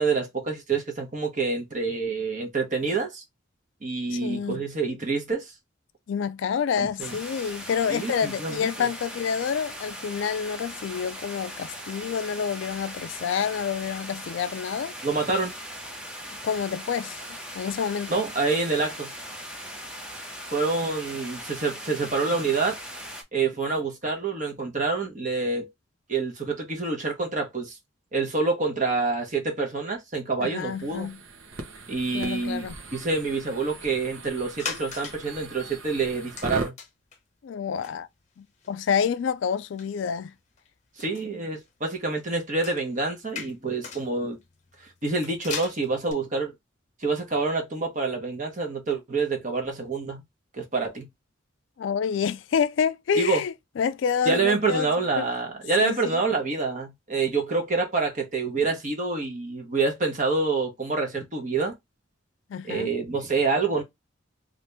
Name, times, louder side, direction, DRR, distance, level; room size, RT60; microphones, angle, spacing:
voice 1, 0.0-3.2 3.8-5.5 6.8-7.2 7.9-8.9 15.0-15.6 18.1-19.1 20.5-22.8 23.3-25.7 26.1-27.8 28.1-31.1 31.9-36.7 41.0-44.4 45.0-46.5 47.0-50.2 50.5-51.1 53.2-53.4 54.3-61.7 62.7-63.8, right 4 dB, 40° right, 0.9 m, -27 dB
voice 2, 4.1-4.6 6.1-14.9 16.4-18.2 30.4-31.2 32.1-32.8 37.4-38.1 38.4-40.3 51.8-54.9 55.2-55.3 55.8-56.2 62.5-62.9, left 7 dB, 65° left, 0.3 m, -28 dB
sound 1, 7.0-23.2, equal, 5° right, 0.6 m, -39 dB
sound 2, 30.7-36.7, right 2 dB, 80° right, 0.9 m, -39 dB
sound 3, 34.6-35.3 35.7-35.8 36.3-37.2 37.5-37.6 37.8-40.7 41.0-46.1, left 6 dB, 35° left, 0.7 m, -39 dB
2.8 x 2.5 x 3.3 m
head